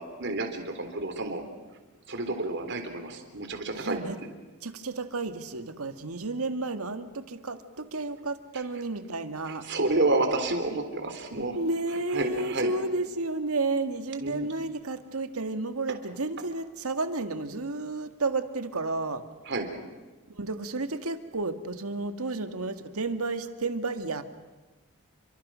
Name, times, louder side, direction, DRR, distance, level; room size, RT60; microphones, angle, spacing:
voice 1, 0.0-1.4 2.1-4.0 9.7-11.6 12.1-12.7 14.2-14.5 19.5-19.7, right 2 dB, 55° right, 6 dB, 3.6 m, -29 dB
voice 2, 3.7-4.2 4.6-9.7 11.5-19.2 20.3-24.2, right 3 dB, 75° right, 9 dB, 1.8 m, -32 dB
29.5 x 24.0 x 6.3 m, 1.2 s
head